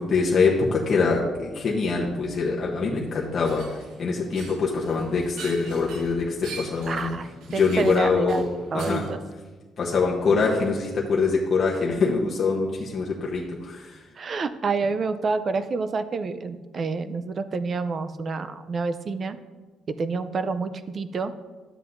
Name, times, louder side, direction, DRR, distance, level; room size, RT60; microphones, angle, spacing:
voice 1, 0.0-7.1 7.5-8.5 8.7-9.1 9.8-14.1, left 4 dB, 35° left, -3 dB, 0.9 m, -24 dB
sound 1, 3.1-9.1, right 3 dB, 85° right, 1.7 m, -43 dB
voice 2, 6.9-7.3 7.5-9.2 14.2-19.4 19.9-21.3, right 4 dB, 35° right, 11 dB, 0.4 m, -28 dB
12.0 x 7.6 x 2.6 m, 1.3 s
cardioid pair, 150°, 0 cm